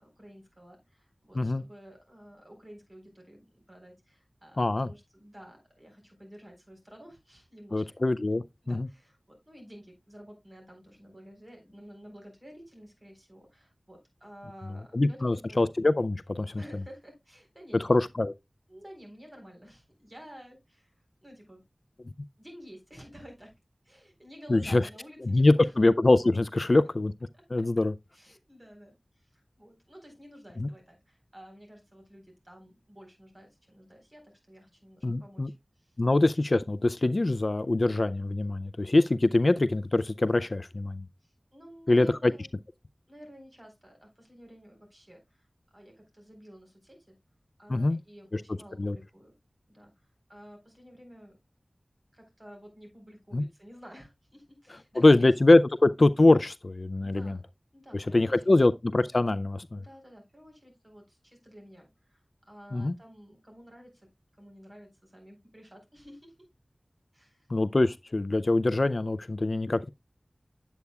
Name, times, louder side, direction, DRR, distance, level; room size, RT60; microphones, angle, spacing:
voice 1, 0.0-7.8 8.6-15.6 16.5-18.0 18.7-20.9 21.2-21.6 22.4-23.5 23.8-25.7 26.5-26.8 27.3-27.6 28.1-36.0 41.2-42.5 43.1-45.5 45.7-47.1 47.6-49.3 49.7-51.4 52.1-55.3 57.0-57.4 57.7-58.5 59.8-64.1 64.4-66.3 67.1-67.5, equal, 30° right, 3.9 m, -51 dB
voice 2, 4.6-4.9 7.7-8.9 14.9-16.6 17.7-18.3 24.5-24.8 25.2-27.1 27.5-27.9 30.6-30.7 35.0-35.5 36.0-41.0 41.9-42.3 47.7-48.0 48.3-48.4 48.8-49.0 53.3-53.4 55.0-57.4 57.9-59.8 62.7-62.9 67.5-69.9, left 2 dB, 55° left, 0.4 m, -23 dB
8.3 x 8.1 x 2.3 m
wide cardioid pair, 60°, 0 cm